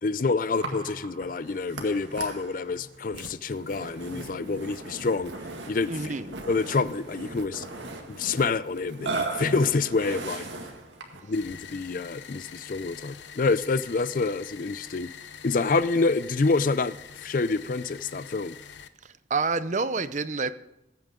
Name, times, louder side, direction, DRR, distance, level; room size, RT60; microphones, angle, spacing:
voice 1, 0.0-5.3 5.7-6.1 6.5-7.7 8.1-10.5 11.2-15.1 15.4-18.6, left 4 dB, 45° left, 0.4 m, -27 dB
Burping eructation, 0.6-11.3, right 3 dB, 90° right, 2.0 m, -38 dB
Walk footsteps, 3.0-9.8, right 3 dB, 70° right, 1.1 m, -52 dB
voice 2, 5.9-6.3 19.0-20.5, right 4 dB, 40° right, 0.6 m, -28 dB
sound 1, 11.3-18.9, left 7 dB, 75° left, 0.8 m, -45 dB
20.0 x 9.1 x 3.7 m
head